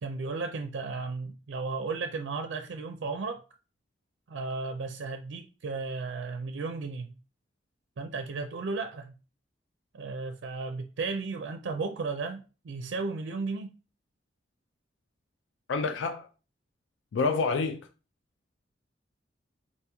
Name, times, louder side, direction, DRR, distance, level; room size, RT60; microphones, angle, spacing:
voice 1, 0.0-3.4 4.3-7.1 8.0-9.1 9.9-13.7, right 4 dB, 85° right, 0.4 m, -34 dB
voice 2, 15.7-16.3 17.1-17.8, left 4 dB, 80° left, 0.4 m, -27 dB
4.2 x 2.9 x 3.4 m
head